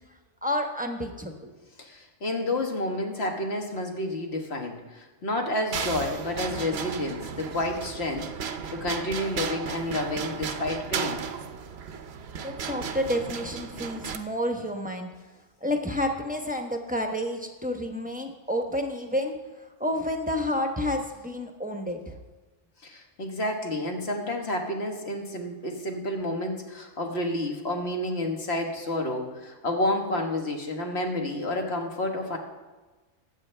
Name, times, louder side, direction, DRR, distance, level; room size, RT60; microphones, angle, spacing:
voice 1, 0.4-1.5 11.9-12.0 12.4-15.1 15.6-19.3 19.8-22.2, left 1 dB, 5° right, 3 dB, 0.9 m, -30 dB
voice 2, 1.8-11.2 22.8-32.4, left 1 dB, 55° left, 2 dB, 1.8 m, -30 dB
sound 1, 5.7-14.2, right 6 dB, 60° right, 0.9 m, -35 dB
20.5 x 8.7 x 3.4 m, 1.2 s
omnidirectional pair, 1.3 m